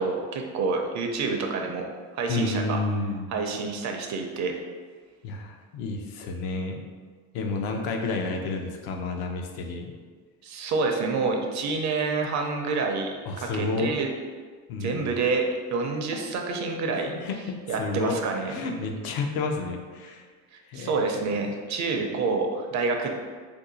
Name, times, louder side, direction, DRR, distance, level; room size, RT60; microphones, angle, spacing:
voice 1, 0.0-1.9 2.1-2.8 3.3-4.6 7.4-7.5 10.4-14.1 14.8-17.1 17.7-18.5 20.5-23.1, right 4 dB, 45° right, 3 dB, 0.5 m, -28 dB
voice 2, 2.3-3.3 5.2-6.8 7.3-9.9 13.3-13.9 14.7-15.1 16.9-18.2 18.5-20.3 20.7-21.0, left 3 dB, 60° left, 3 dB, 0.6 m, -30 dB
2.6 x 2.3 x 3.9 m, 1.5 s
supercardioid pair, 100°, 41 cm